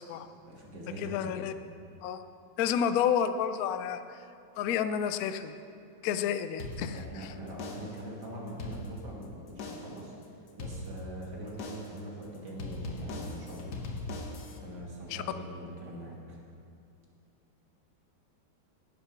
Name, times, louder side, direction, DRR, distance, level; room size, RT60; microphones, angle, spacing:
voice 1, 0.5-1.5 6.9-13.8 14.6-16.4, right 1 dB, 55° right, -3 dB, 2.4 m, -43 dB
voice 2, 1.0-1.5 2.0-2.2 2.6-4.2 4.6-5.5 6.0-7.3 15.1-15.2, left 8 dB, 85° left, 10 dB, 0.8 m, -30 dB
sound 1, 6.6-7.2 7.6-8.1 8.5-9.2 9.6-10.1 10.6-11.2 11.6-12.1 12.6-14.6, left 2 dB, 60° left, 1.5 m, -40 dB
10.5 x 9.0 x 5.9 m, 2.5 s
omnidirectional pair, 2.2 m